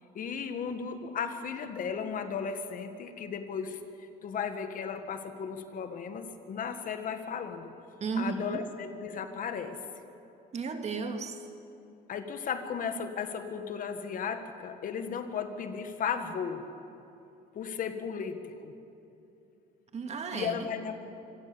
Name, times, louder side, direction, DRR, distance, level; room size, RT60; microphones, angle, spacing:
voice 1, 0.2-7.7 8.2-9.8 12.1-16.6 17.6-18.7 20.3-20.9, left 6 dB, 55° left, 8 dB, 1.8 m, -35 dB
voice 2, 8.0-8.6 10.5-11.4 19.9-20.7, right 5 dB, 40° right, 5 dB, 2.3 m, -34 dB
25.5 x 18.0 x 7.1 m, 2.9 s
cardioid pair, 110°, 17 cm